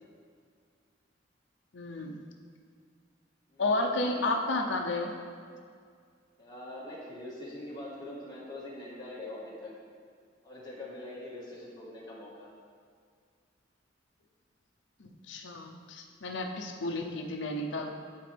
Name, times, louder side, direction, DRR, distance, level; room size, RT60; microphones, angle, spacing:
voice 1, 1.7-2.2 3.6-5.1 15.0-17.9, left 2 dB, 70° left, 2 dB, 0.6 m, -32 dB
voice 2, 3.5-4.2 6.4-9.7 10.4-12.5 16.5-16.8, left 1 dB, 20° left, -6 dB, 1.6 m, -43 dB
11.0 x 4.4 x 3.4 m, 2.1 s
head